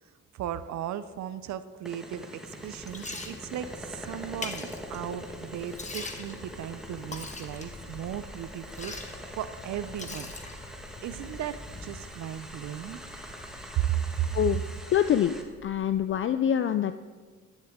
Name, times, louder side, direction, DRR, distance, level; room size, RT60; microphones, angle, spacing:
voice 1, 0.3-10.3 11.0-13.0 13.7-14.4, right 11 dB, 70° right, 13 dB, 0.6 m, -35 dB
sound 1, 1.9-15.4, equal, ahead, 1.5 m, -44 dB
Liquid, 2.4-14.8, left 2 dB, 25° left, 1.4 m, -44 dB
sound 2, 3.6-16.1, left 1 dB, 70° left, 3.6 m, -52 dB
voice 2, 14.9-15.4 15.6-17.0, left 9 dB, 45° left, 11 dB, 0.4 m, -25 dB
11.5 x 10.5 x 3.6 m, 1.4 s
cardioid pair, 90°, 30 cm